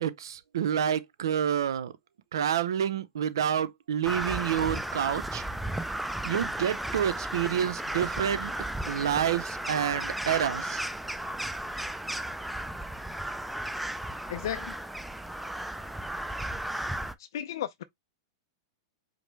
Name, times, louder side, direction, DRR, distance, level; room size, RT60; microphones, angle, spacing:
voice 1, 0.0-1.9 2.3-5.4 6.2-8.5 8.9-10.8, right 9 dB, 80° right, 0.5 m, -28 dB
Crow, 4.0-17.1, right 1 dB, 5° right, 0.4 m, -34 dB
voice 2, 14.3-14.7 17.2-17.8, left 11 dB, 75° left, 0.4 m, -34 dB
5.0 x 2.0 x 3.3 m
hypercardioid pair, 120°, 2 cm